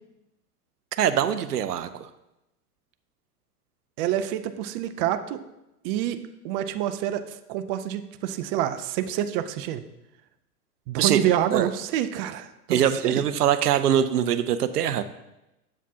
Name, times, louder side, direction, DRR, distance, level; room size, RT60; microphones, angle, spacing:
voice 1, 1.0-2.1 11.0-11.2 11.5-11.7 12.7-15.0, right 9 dB, 80° right, 11 dB, 0.6 m, -23 dB
voice 2, 4.0-5.4 5.8-6.2 6.4-9.8 10.9-13.1, right 11 dB, 40° right, 9 dB, 0.5 m, -27 dB
7.4 x 7.2 x 2.8 m, 0.92 s
hypercardioid pair, 100°, 46 cm